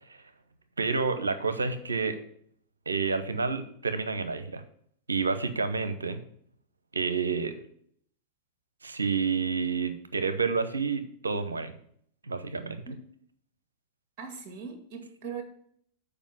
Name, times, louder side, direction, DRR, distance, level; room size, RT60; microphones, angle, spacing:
voice 1, 0.8-2.2 2.9-4.6 5.1-6.2 6.9-7.5 8.8-11.7 12.2-12.8, right 5 dB, 75° right, 10 dB, 0.8 m, -29 dB
voice 2, 14.2-15.4, right 6 dB, 35° right, 4 dB, 1.7 m, -40 dB
7.1 x 4.9 x 7.0 m, 0.64 s
figure-of-eight pair, 90°, 0 cm